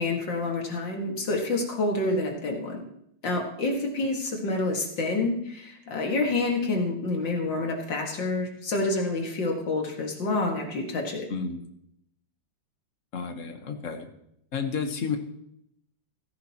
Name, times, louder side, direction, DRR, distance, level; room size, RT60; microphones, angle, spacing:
voice 1, 0.0-2.9 3.2-11.3, left 2 dB, 70° left, 1 dB, 2.7 m, -28 dB
voice 2, 11.3-11.7 13.1-14.1 14.5-15.2, left 5 dB, 45° left, 5 dB, 1.5 m, -31 dB
16.0 x 13.5 x 3.0 m, 0.75 s
omnidirectional pair, 2.1 m